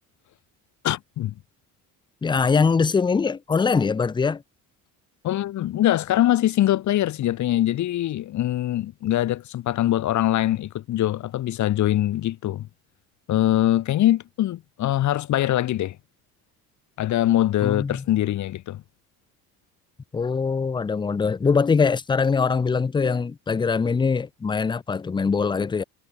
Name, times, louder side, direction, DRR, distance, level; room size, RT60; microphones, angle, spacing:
voice 1, 0.8-1.3 5.2-12.7 13.3-16.0 17.0-18.8, left 13 dB, 60° left, 3.9 m, -23 dB
voice 2, 2.2-4.4 17.6-18.0 20.1-25.8, left 5 dB, 15° left, 0.5 m, -22 dB
cardioid pair, 130°, 33 cm